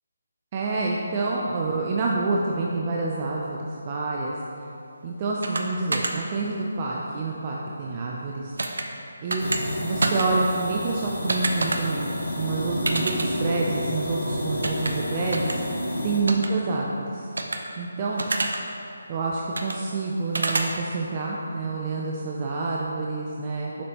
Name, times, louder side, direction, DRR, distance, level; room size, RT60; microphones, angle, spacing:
voice 1, 0.5-4.4 5.0-8.5 9.2-15.6 16.0-17.3 17.8-18.3 19.1-23.8, right 3 dB, 20° right, -3 dB, 0.3 m, -28 dB
sound 1, 5.4-5.6 5.9-6.1 8.6-8.8 9.3-9.6 10.0-10.3 11.3-11.8 12.9-13.3 14.6-14.9 15.3-15.5 16.3-16.5 17.4-17.6 18.2-18.6 19.6-19.8 20.3-20.7, right 2 dB, 75° right, 0.6 m, -26 dB
sound 2, 9.4-16.2, equal, 65° left, 1.3 m, -30 dB
6.8 x 5.2 x 2.9 m, 2.8 s
hypercardioid pair, 175°, 0 cm